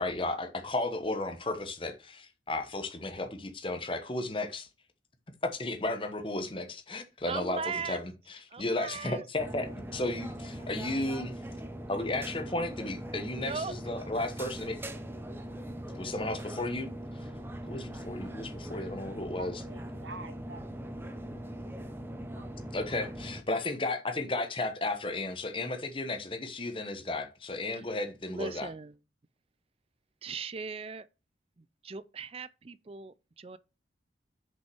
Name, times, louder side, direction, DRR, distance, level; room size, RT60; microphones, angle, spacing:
voice 1, 0.0-4.7 5.4-11.4 11.9-14.8 16.0-17.3 17.6-19.6 22.7-28.7, left 2 dB, 30° left, 1.1 m, -34 dB
voice 2, 7.3-8.0 8.5-9.2 13.3-13.7 27.7-27.8 28.3-29.0 30.2-31.1 31.6-33.6, right 5 dB, 30° right, 0.4 m, -38 dB
sound 1, 9.4-23.4, right 1 dB, 10° right, 0.8 m, -41 dB
voice 3, 19.4-21.2 22.3-22.5 22.9-23.0, right 3 dB, 80° right, 1.6 m, -47 dB
6.4 x 5.4 x 6.2 m
head